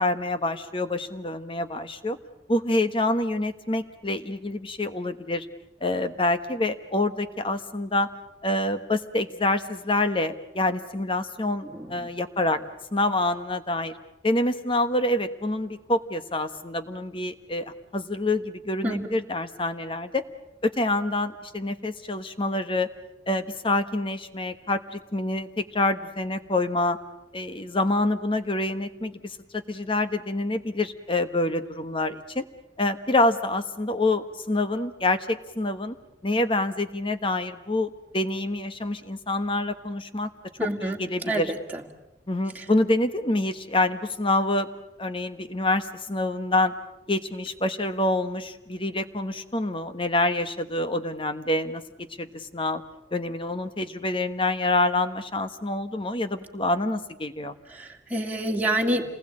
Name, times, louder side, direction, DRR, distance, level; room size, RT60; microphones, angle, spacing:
voice 1, 0.0-2.2 2.5-5.5 5.8-8.1 8.4-12.6 12.9-13.9 14.2-20.2 20.6-22.9 23.3-27.0 27.3-32.4 32.8-35.9 36.2-40.3 40.6-41.5 42.3-44.7 45.0-46.7 47.1-52.8 53.1-57.5, left 2 dB, 30° left, 9 dB, 1.2 m, -26 dB
voice 2, 11.7-12.1 18.8-19.1 40.6-41.0 41.2-41.8 42.5-42.6 57.7-59.0, right 1 dB, 10° right, 0 dB, 2.3 m, -28 dB
28.0 x 20.0 x 8.7 m, 0.93 s
head